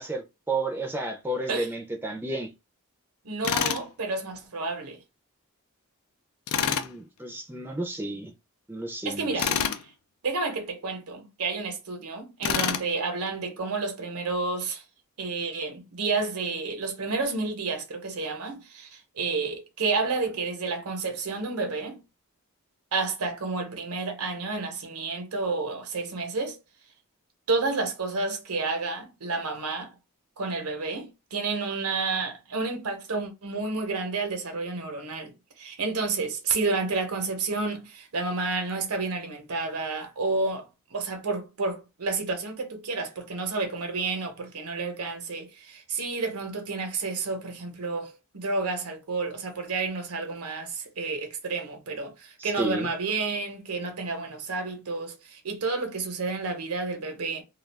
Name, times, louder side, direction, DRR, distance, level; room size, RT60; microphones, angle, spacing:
voice 1, 0.0-2.5 6.6-8.3 8.7-9.5 52.4-52.9, right 2 dB, 10° right, 0.4 m, -32 dB
voice 2, 3.2-5.0 9.0-9.5 10.2-14.8 15.2-22.0 22.9-26.6 27.5-29.9 30.4-35.3 35.6-57.4, right 3 dB, 80° right, 0.8 m, -30 dB
Tools, 3.4-3.9 6.5-6.9 9.4-9.8 12.4-12.9, left 8 dB, 75° left, 0.3 m, -26 dB
2.3 x 2.3 x 3.3 m
head